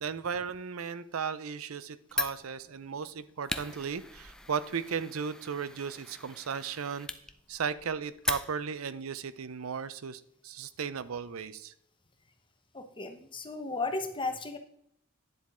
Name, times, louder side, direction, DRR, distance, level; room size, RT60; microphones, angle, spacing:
voice 1, 0.0-7.1 7.5-11.7, right 6 dB, 80° right, 14 dB, 0.6 m, -36 dB
Fire, 2.1-8.9, left 2 dB, 5° left, 0.5 m, -39 dB
voice 2, 12.7-14.6, left 3 dB, 25° left, 6 dB, 1.1 m, -35 dB
9.8 x 7.3 x 3.7 m, 0.72 s
head